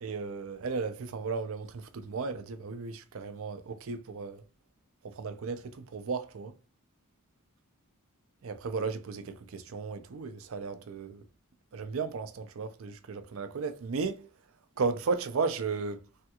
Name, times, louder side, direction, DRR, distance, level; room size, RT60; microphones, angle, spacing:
voice 1, 0.0-4.4 5.0-6.5 8.4-11.2 11.7-14.3 14.8-16.0, right 4 dB, 65° right, 0.4 m, -35 dB
3.4 x 2.3 x 2.8 m
head